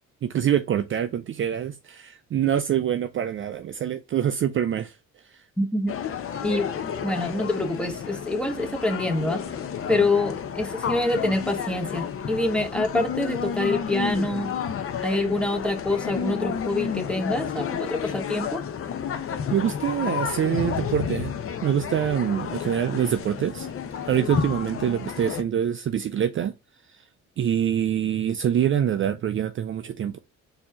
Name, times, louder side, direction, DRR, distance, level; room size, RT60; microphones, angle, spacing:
voice 1, 0.2-4.9 19.5-21.3 21.6-23.7 24.1-26.5 27.4-30.2, right 9 dB, 45° right, 0.4 m, -25 dB
voice 2, 5.6-6.0 6.4-6.7 7.0-9.4 9.9-14.5 15.0-18.6, left 2 dB, 5° left, 1.0 m, -26 dB
sound 1, 5.9-25.4, left 7 dB, 50° left, 0.7 m, -31 dB
4.3 x 2.9 x 4.3 m
cardioid pair, 90°, 30 cm